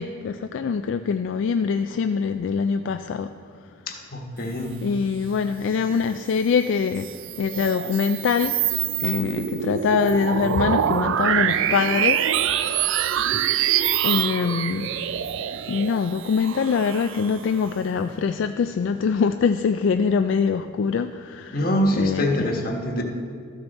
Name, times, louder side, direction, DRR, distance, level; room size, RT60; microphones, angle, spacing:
voice 1, 0.0-3.3 4.8-7.1 7.4-8.5 9.0-12.2 12.5-13.2 14.0-14.9 15.7-22.5, left 5 dB, 75° left, 8 dB, 0.3 m, -24 dB
voice 2, 3.9-4.8 21.5-23.0, equal, 50° left, 1 dB, 1.2 m, -24 dB
sound 1, 6.8-17.7, right 10 dB, 85° right, 0.4 m, -25 dB
13.5 x 6.5 x 4.1 m, 2.2 s
head